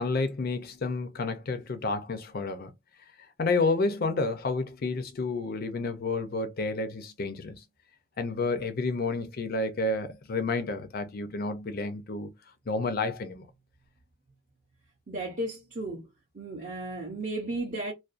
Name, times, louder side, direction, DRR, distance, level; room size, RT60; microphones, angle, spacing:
voice 1, 0.0-2.7 3.4-7.6 8.2-12.3 12.7-13.5, left 3 dB, 40° left, 0.4 m, -30 dB
voice 2, 15.1-16.1 16.3-17.9, right 2 dB, 35° right, 0.5 m, -34 dB
2.4 x 2.2 x 2.4 m
head